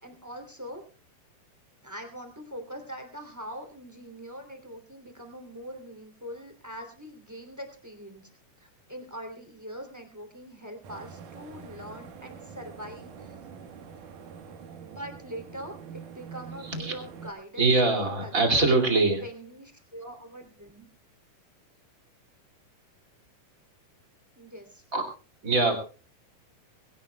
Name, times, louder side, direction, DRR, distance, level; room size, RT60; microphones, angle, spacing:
voice 1, 0.0-0.8 1.8-8.3 8.6-13.4 14.8-17.7 18.0-18.5 19.1-20.9 24.4-24.8, equal, 5° right, 4 dB, 2.5 m, -43 dB
sound 1, 10.8-17.3, right 6 dB, 75° right, 3.0 m, -45 dB
voice 2, 17.6-19.2 24.9-25.0 25.4-25.7, right 3 dB, 25° right, 4 dB, 2.7 m, -23 dB
22.0 x 17.5 x 2.3 m, 0.35 s
omnidirectional pair, 3.8 m